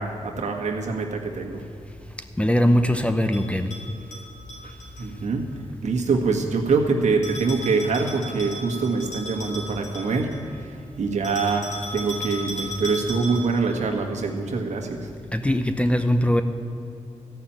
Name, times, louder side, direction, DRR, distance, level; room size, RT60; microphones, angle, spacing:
voice 1, 0.0-1.6 4.6-4.7 5.0-5.5 5.8-10.3 10.6-11.7 11.9-15.1, right 4 dB, 70° right, 1 dB, 1.7 m, -24 dB
voice 2, 2.4-3.7 15.3-16.4, equal, 10° left, 7 dB, 0.8 m, -21 dB
Bell, 3.3-5.1 7.2-10.5 11.2-13.6, left 1 dB, 75° left, 3.6 m, -36 dB
14.0 x 5.9 x 8.7 m, 2.8 s
cardioid pair, 60°, 13 cm